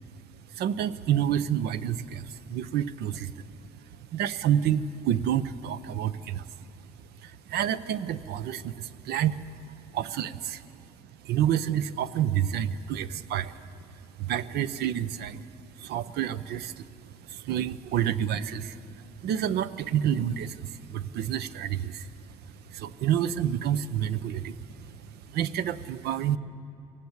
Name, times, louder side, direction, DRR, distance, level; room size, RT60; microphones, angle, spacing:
voice 1, 0.5-3.4 4.1-6.5 7.2-9.6 9.9-10.6 11.2-13.6 14.2-16.9 17.2-26.4, right 10 dB, 70° right, 14 dB, 0.8 m, -29 dB
22.5 x 17.5 x 8.1 m, 2.5 s
cardioid pair, 110°, 17 cm